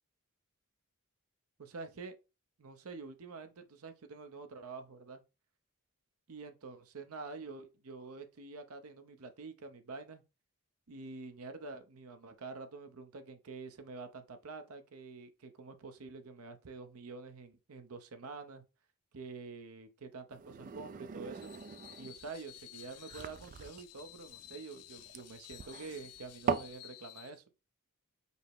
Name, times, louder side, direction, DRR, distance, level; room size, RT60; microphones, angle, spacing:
voice 1, 1.6-2.2 2.6-5.2 6.3-10.2 10.9-18.6 19.1-21.5 22.0-27.4, right 4 dB, 75° right, 0.7 m, -47 dB
sound 1, 20.3-26.8, right 5 dB, 35° right, 0.3 m, -41 dB
Screech, 21.3-27.4, left 15 dB, 80° left, 0.4 m, -54 dB
5.4 x 2.1 x 4.5 m
head